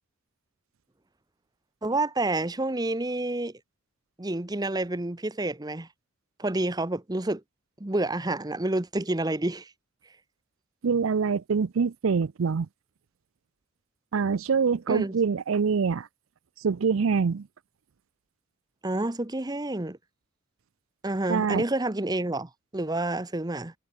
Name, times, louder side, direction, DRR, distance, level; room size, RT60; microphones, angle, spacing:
voice 1, 1.8-3.5 4.2-5.9 6.4-7.4 7.8-9.7 14.9-15.1 18.8-20.0 21.0-23.7, right 2 dB, 20° right, 0.9 m, -29 dB
voice 2, 10.8-12.7 14.1-16.1 16.6-17.5 21.3-21.6, right 5 dB, 75° right, 0.5 m, -25 dB
head